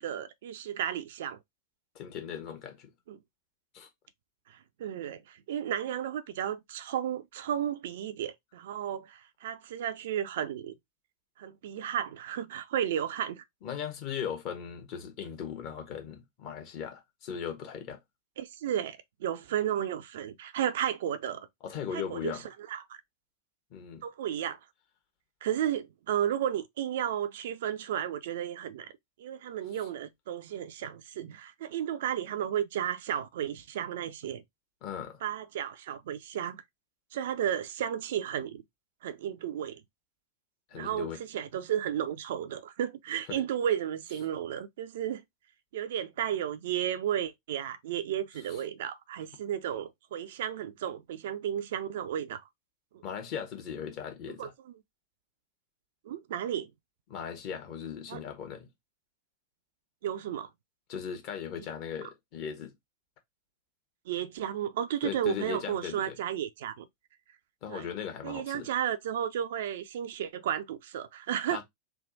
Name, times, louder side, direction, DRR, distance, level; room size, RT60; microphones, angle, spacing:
voice 1, 0.0-1.4 3.1-3.2 4.5-10.7 11.4-13.4 18.4-21.5 21.9-22.4 22.7-23.0 24.0-24.6 25.4-28.9 29.2-34.4 35.2-36.6 37.1-38.6 39.0-39.8 40.7-45.2 45.7-52.4 52.9-53.0 54.4-54.5 56.1-56.7 58.1-58.2 60.0-60.5 61.6-61.7 64.1-66.9 67.7-67.9 68.2-71.6, right 10 dB, 55° right, 0.4 m, -33 dB
voice 2, 1.9-2.9 3.7-3.9 13.6-18.0 21.6-22.5 23.7-24.0 34.8-35.2 40.7-41.2 43.3-43.4 48.5-48.6 53.0-54.5 57.1-58.7 60.9-62.7 65.0-66.2 67.6-68.7 71.5-71.6, left 8 dB, 40° left, 1.1 m, -38 dB
3.4 x 2.3 x 3.8 m
figure-of-eight pair, 90°, 0 cm